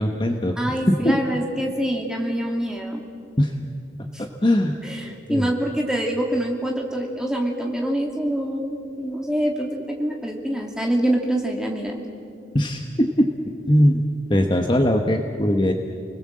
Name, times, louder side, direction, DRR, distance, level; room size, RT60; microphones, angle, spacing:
voice 1, 0.0-0.5 0.9-1.4 3.4-3.5 4.2-4.8 5.3-5.5 12.5-13.3 13.7-14.0 14.3-15.7, equal, 25° left, 3 dB, 1.1 m, -20 dB
voice 2, 0.6-3.0 4.1-4.2 4.8-11.9, right 1 dB, 5° right, 0 dB, 2.5 m, -25 dB
30.0 x 20.0 x 7.6 m, 2.4 s
head